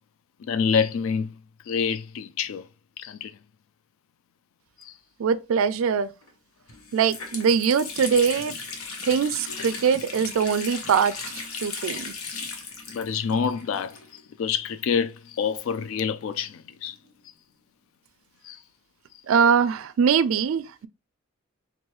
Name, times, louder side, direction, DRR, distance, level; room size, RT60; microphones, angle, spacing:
voice 1, 0.4-1.3 1.7-2.6 3.0-3.4 4.8-4.9 12.9-14.0 14.4-17.0 18.4-18.6, left 6 dB, 70° left, 0.3 m, -27 dB
voice 2, 5.2-6.1 6.9-8.5 9.0-12.1 19.3-20.9, right 6 dB, 70° right, 0.3 m, -22 dB
Water tap faucet, 6.2-6.3 6.7-14.4 14.7-14.8 15.6-17.2, left 4 dB, 90° left, 1.0 m, -37 dB
4.5 x 2.6 x 3.1 m
head